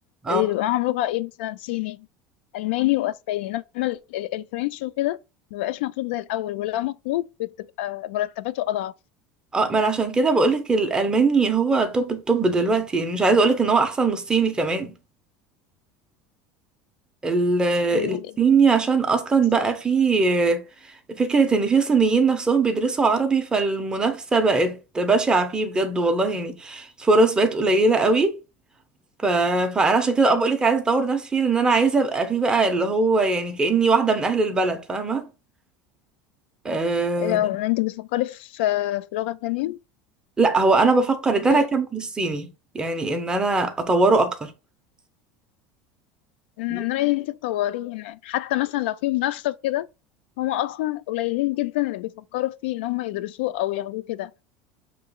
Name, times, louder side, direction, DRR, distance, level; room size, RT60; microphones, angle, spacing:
voice 1, 0.3-2.1 2.5-5.2 5.5-7.5 7.8-8.9 17.9-18.3 30.3-30.4 37.2-39.8 41.5-41.7 46.6-49.9 50.4-54.3, left 16 dB, 85° left, 0.3 m, -26 dB
voice 2, 9.5-14.9 17.2-20.6 21.1-28.3 29.2-35.3 36.6-37.4 40.4-42.5 42.7-44.5 46.7-46.8, right 3 dB, 15° right, 0.7 m, -21 dB
6.5 x 3.0 x 2.3 m
supercardioid pair, 135°, 6 cm